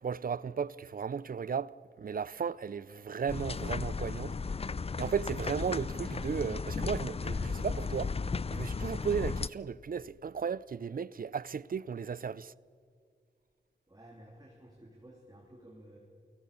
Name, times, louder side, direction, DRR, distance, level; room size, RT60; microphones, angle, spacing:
voice 1, 0.0-4.4 5.0-8.1 8.5-12.5, right 6 dB, 50° right, 0.5 m, -35 dB
Sliding door, 2.7-7.8, equal, ahead, 6.6 m, -59 dB
sound 1, 3.3-9.5, left 4 dB, 35° left, 0.5 m, -35 dB
voice 2, 13.9-16.0, right 1 dB, 20° right, 3.5 m, -54 dB
29.0 x 18.0 x 6.9 m
cardioid pair, 65°, 18 cm